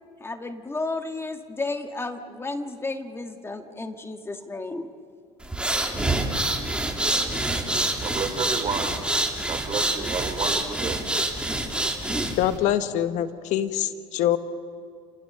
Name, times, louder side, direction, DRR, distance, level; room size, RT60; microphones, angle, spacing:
voice 1, 0.2-4.9 11.7-12.1, left 2 dB, 20° left, 6 dB, 1.6 m, -33 dB
sound 1, 5.4-12.6, right 2 dB, 5° right, 2.9 m, -26 dB
voice 2, 8.0-9.0 9.4-11.0, right 5 dB, 40° right, 6 dB, 4.0 m, -31 dB
voice 3, 12.4-14.4, left 11 dB, 65° left, 11 dB, 1.2 m, -24 dB
29.5 x 19.0 x 6.7 m, 2.2 s
supercardioid pair, 95°, 13 cm